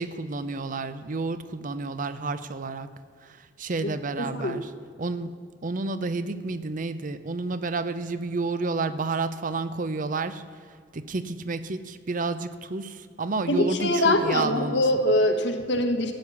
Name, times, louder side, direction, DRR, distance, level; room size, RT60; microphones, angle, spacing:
voice 1, 0.0-2.9 3.2-4.7 5.0-5.4 5.6-10.4 10.9-14.8, right 3 dB, 45° right, 12 dB, 0.6 m, -30 dB
voice 2, 4.2-4.6 13.5-16.1, left 1 dB, 75° left, 5 dB, 1.3 m, -23 dB
13.0 x 8.6 x 7.0 m, 2.2 s
head